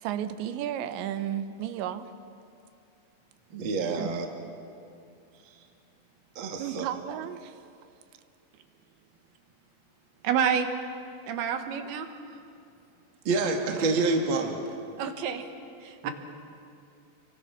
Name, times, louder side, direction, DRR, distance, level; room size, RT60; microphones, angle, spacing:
voice 1, 0.0-2.1 4.0-4.1 6.6-7.6, right 10 dB, 90° right, 10 dB, 3.2 m, -33 dB
voice 2, 3.5-4.2 6.4-6.8 13.2-14.6 16.0-16.1, right 3 dB, 40° right, 2 dB, 1.9 m, -27 dB
voice 3, 10.2-10.7 11.2-12.1 15.0-15.4 15.8-16.1, right 8 dB, 70° right, 7 dB, 3.0 m, -28 dB
29.5 x 23.5 x 6.1 m, 2.5 s
omnidirectional pair, 5.1 m